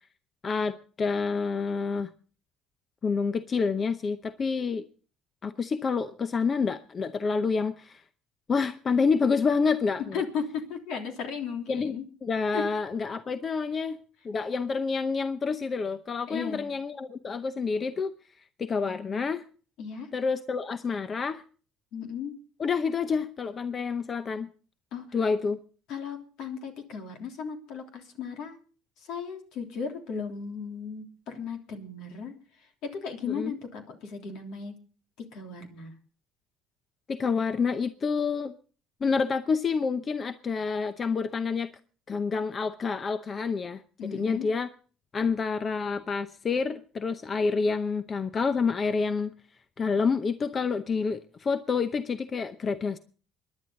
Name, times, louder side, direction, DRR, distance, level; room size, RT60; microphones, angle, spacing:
voice 1, 0.4-2.1 3.0-4.8 5.4-8.0 8.5-10.1 11.7-11.9 12.2-14.0 14.2-18.1 18.6-19.4 20.1-21.4 22.6-24.5 25.1-25.6 33.3-33.6 37.1-38.5 39.0-41.7 42.1-43.8 44.1-44.7 45.1-49.3 49.8-53.0, left 5 dB, 35° left, 11 dB, 0.7 m, -28 dB
voice 2, 10.1-12.1 12.5-12.7 16.3-16.7 19.8-20.1 21.9-22.4 24.9-25.2 25.9-28.6 29.0-34.7 35.2-35.9 44.0-44.5, left 6 dB, 75° left, 4 dB, 3.2 m, -36 dB
24.0 x 10.5 x 3.9 m, 0.40 s
cardioid pair, 100°, 0 cm